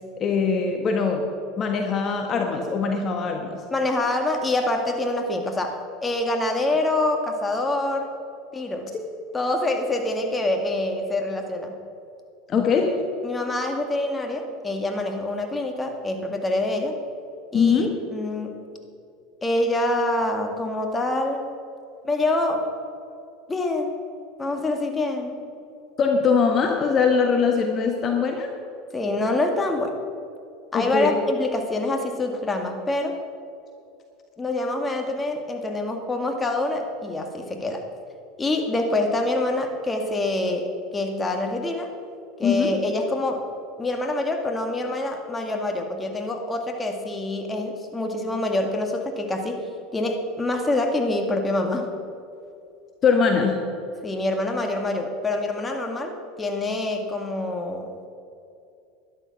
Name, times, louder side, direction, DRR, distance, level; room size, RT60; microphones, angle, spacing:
voice 1, 0.2-1.2 1.6-3.6 12.5-12.9 17.5-17.9 26.0-28.5 30.7-31.1 42.4-42.7 53.0-53.6, left 5 dB, 40° left, 3 dB, 1.5 m, -21 dB
voice 2, 3.7-8.1 8.5-8.9 9.3-11.8 13.2-17.0 17.5-18.6 19.4-21.5 22.0-22.7 23.5-23.9 24.4-25.4 28.9-29.9 30.7-33.2 34.4-37.8 38.4-41.9 42.4-43.5 43.8-49.7 49.9-51.9 54.0-57.9, left 2 dB, 20° left, 4 dB, 2.0 m, -26 dB
12.0 x 11.0 x 6.1 m, 2.6 s
hypercardioid pair, 85°, 0 cm